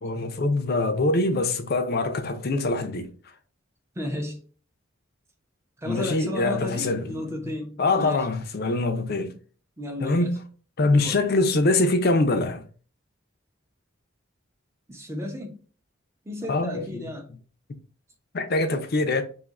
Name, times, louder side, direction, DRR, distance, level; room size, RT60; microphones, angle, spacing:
voice 1, 0.0-3.1 5.8-7.5 7.8-9.3 10.0-10.4 10.8-12.6 16.5-17.0 18.3-19.2, left 2 dB, 50° left, 0.5 m, -24 dB
voice 2, 4.0-4.4 5.8-8.3 9.8-10.3 10.9-11.2 14.9-15.6 16.3-17.3, left 1 dB, 15° right, 0.6 m, -33 dB
2.6 x 2.4 x 4.0 m
head